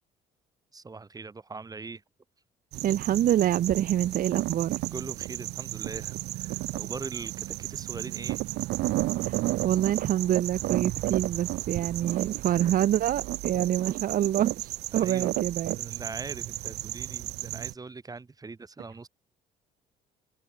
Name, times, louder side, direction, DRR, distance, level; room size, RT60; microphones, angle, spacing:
voice 1, 0.7-2.0 4.9-8.4 14.9-15.3 15.7-19.1, right 4 dB, 20° right, 4.9 m, -41 dB
sound 1, 2.7-17.7, right 18 dB, 85° right, 2.1 m, -33 dB
voice 2, 2.8-4.8 9.2-15.7, right 11 dB, 55° right, 1.3 m, -26 dB
cardioid pair, 110°, 17 cm